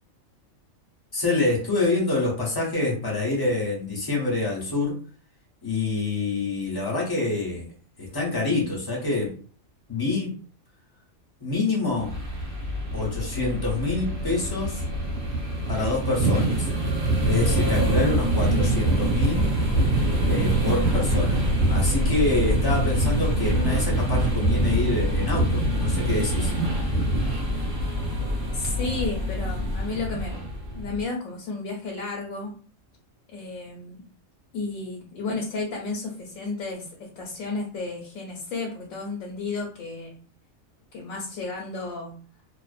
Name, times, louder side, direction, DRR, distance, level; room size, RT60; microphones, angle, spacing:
voice 1, 1.1-5.0 5.6-7.7 8.0-9.4 9.9-10.4 11.4-12.1 12.9-14.8 15.7-16.7 17.3-19.5 20.2-21.4 21.7-26.5, left 3 dB, 25° left, -2 dB, 0.5 m, -26 dB
sound 1, 12.0-31.0, right 1 dB, 45° right, 1.0 m, -24 dB
voice 2, 28.5-30.4 30.7-32.5 33.3-34.0 34.5-40.2 40.9-42.1, left 3 dB, 80° left, 0 dB, 1.0 m, -32 dB
2.5 x 2.0 x 2.4 m, 0.42 s
omnidirectional pair, 1.4 m